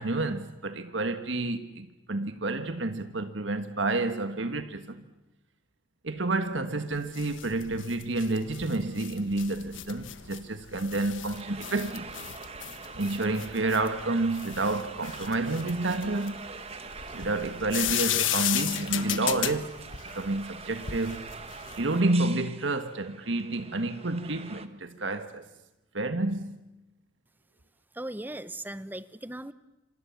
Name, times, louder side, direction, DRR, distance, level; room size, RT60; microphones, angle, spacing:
voice 1, 0.0-5.0 6.0-12.3 12.9-16.5 17.1-19.8 20.1-21.4 21.8-25.5 25.9-26.6, right 2 dB, 75° right, 1.5 m, -29 dB
sound 1, 6.9-22.0, left 11 dB, 85° left, 1.5 m, -35 dB
sound 2, 11.3-24.7, right 5 dB, 30° right, 1.5 m, -44 dB
voice 2, 27.9-29.5, right 1 dB, 10° right, 0.8 m, -38 dB
27.5 x 27.0 x 7.2 m
head